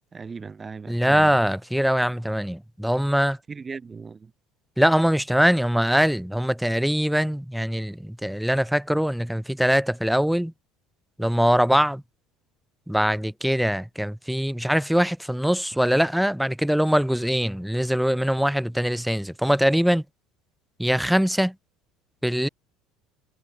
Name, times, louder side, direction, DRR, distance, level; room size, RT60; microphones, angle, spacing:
voice 1, 0.1-1.4 3.5-4.3, right 5 dB, 25° right, 7.7 m, -37 dB
voice 2, 0.9-3.4 4.8-10.5 11.2-12.0 12.9-20.0 20.8-21.5 22.2-22.5, equal, ahead, 1.1 m, -22 dB
hypercardioid pair, 75°, 0 cm